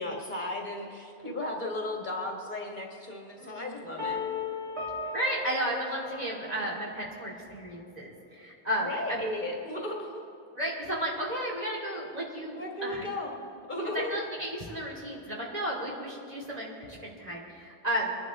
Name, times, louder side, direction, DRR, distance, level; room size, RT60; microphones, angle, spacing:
voice 1, 0.0-4.2 8.8-10.2 12.5-14.2, left 1 dB, 45° left, 0 dB, 1.8 m, -35 dB
voice 2, 3.4-4.2 5.1-9.2 10.5-13.0 13.9-18.2, right 1 dB, 35° right, -5 dB, 3.0 m, -33 dB
sound 1, 4.0-6.9, left 4 dB, 65° right, 2.3 m, -36 dB
24.0 x 11.0 x 3.6 m, 2.6 s
omnidirectional pair, 1.2 m